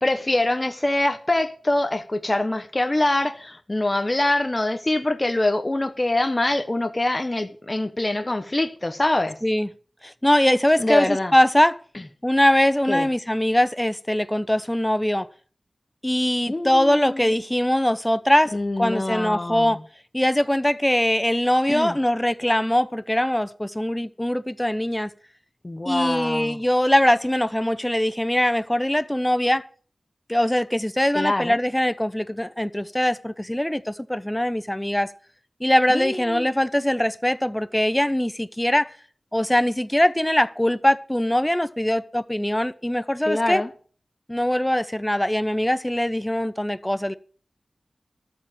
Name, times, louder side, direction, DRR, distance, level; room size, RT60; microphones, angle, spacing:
voice 1, 0.0-9.4 10.8-11.3 12.9-13.1 16.5-17.3 18.5-19.8 21.7-22.0 25.6-26.6 31.1-31.6 35.9-36.5 43.3-43.7, left 2 dB, 30° left, 1.1 m, -24 dB
voice 2, 10.0-11.8 12.2-15.3 16.0-19.8 20.1-25.1 25.8-29.6 30.3-35.1 35.6-38.9 39.3-43.6 44.3-47.1, left 1 dB, 10° left, 0.7 m, -22 dB
13.0 x 5.0 x 9.0 m
wide cardioid pair, 65°, 0 cm